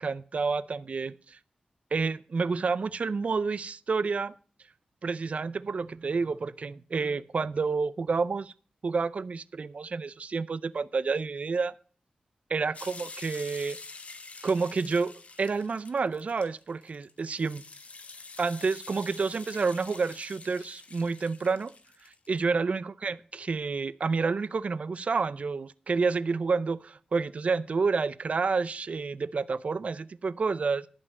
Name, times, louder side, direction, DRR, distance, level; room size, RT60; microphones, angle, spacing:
voice 1, 0.0-1.4 1.9-4.3 5.0-8.5 8.8-11.7 12.5-13.8 14.4-15.1 15.4-17.6 18.4-21.7 22.0-30.9, right 4 dB, 55° right, 0.4 m, -29 dB
sound 1, 12.7-22.5, left 3 dB, 55° left, 1.2 m, -47 dB
11.0 x 5.4 x 7.5 m
wide cardioid pair, 95°, 3 cm